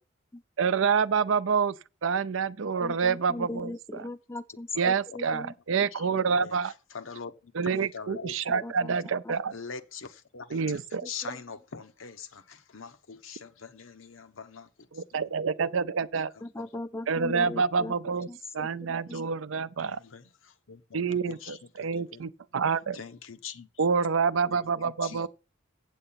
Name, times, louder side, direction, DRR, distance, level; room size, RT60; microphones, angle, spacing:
voice 1, 0.6-1.8 2.0-3.7 4.8-6.7 7.5-9.5 10.5-11.1 14.9-16.3 17.1-18.3 18.5-20.0 20.9-23.0 23.8-25.3, right 5 dB, 75° right, 0.5 m, -27 dB
voice 2, 2.8-5.5 8.6-9.4 11.0-11.4 16.4-17.9 18.3-19.3, left 2 dB, 15° left, 0.5 m, -39 dB
voice 3, 6.9-8.6 8.9-9.0 9.5-10.6 11.0-14.7 14.9-15.0 16.6-16.7 19.1-19.2 19.9-22.3 22.9-23.7 24.5-24.6 24.8-25.3, left 6 dB, 75° left, 0.9 m, -43 dB
8.3 x 7.8 x 5.7 m
head